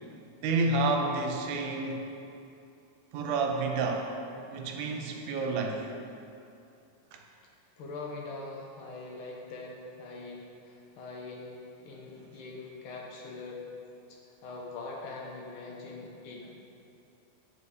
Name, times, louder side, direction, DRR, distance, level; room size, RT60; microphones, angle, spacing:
voice 1, 0.4-2.1 3.1-4.1 4.5-5.9 7.1-7.2 12.2-12.3, right 3 dB, 80° right, 2 dB, 2.2 m, -29 dB
voice 2, 7.8-13.6 14.1-16.5, left 3 dB, 80° left, -2 dB, 1.1 m, -43 dB
9.0 x 6.8 x 3.6 m, 2.7 s
omnidirectional pair, 3.6 m